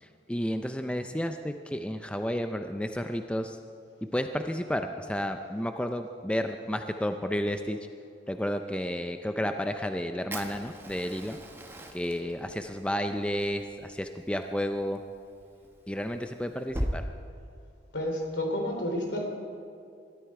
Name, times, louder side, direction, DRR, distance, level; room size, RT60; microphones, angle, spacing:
voice 1, 0.0-3.6 4.1-7.8 8.3-11.4 11.9-15.0 15.9-17.0, equal, 5° left, 7 dB, 0.4 m, -31 dB
Fire, 10.3-16.9, equal, 10° right, 1.1 m, -40 dB
voice 2, 17.9-19.3, left 1 dB, 70° left, 2 dB, 3.2 m, -30 dB
21.5 x 13.5 x 4.8 m, 2.4 s
head